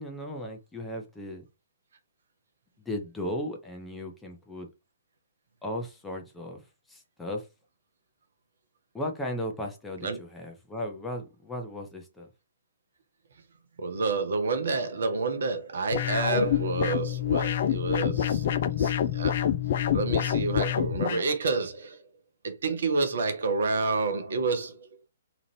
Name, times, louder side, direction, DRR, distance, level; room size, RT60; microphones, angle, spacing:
voice 1, 0.0-1.4 2.8-4.7 5.6-6.6 6.9-7.5 8.9-12.3, left 1 dB, 5° left, 0.7 m, -36 dB
voice 2, 13.8-19.3 19.9-22.0 22.4-24.9, right 4 dB, 60° right, 0.7 m, -29 dB
sound 1, 15.9-21.2, left 9 dB, 50° left, 0.4 m, -26 dB
2.9 x 2.4 x 3.1 m
figure-of-eight pair, 125°, 0 cm